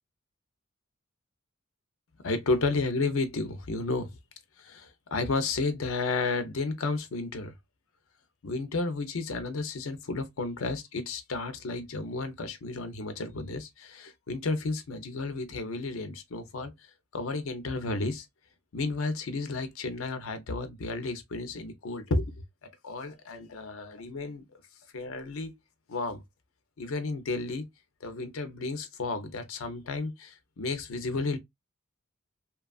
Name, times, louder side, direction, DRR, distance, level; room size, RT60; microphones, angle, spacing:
voice 1, 2.2-4.1 4.6-7.5 8.4-16.7 17.1-18.2 18.7-22.3 22.8-24.4 24.9-25.5 25.9-26.2 26.8-27.6 28.0-31.4, left 3 dB, 85° left, 0.6 m, -32 dB
2.9 x 2.3 x 2.3 m
head